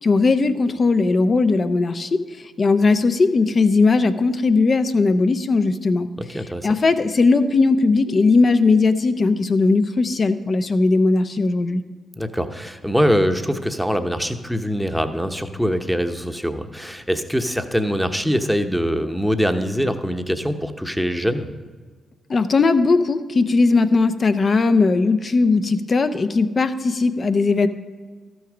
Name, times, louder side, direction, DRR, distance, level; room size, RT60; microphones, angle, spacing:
voice 1, 0.0-11.8 22.3-27.7, left 3 dB, 50° left, 10 dB, 0.7 m, -18 dB
voice 2, 6.3-6.7 12.2-21.5, equal, ahead, 7 dB, 0.9 m, -23 dB
13.0 x 6.3 x 5.0 m, 1.5 s
hypercardioid pair, 45°, 0 cm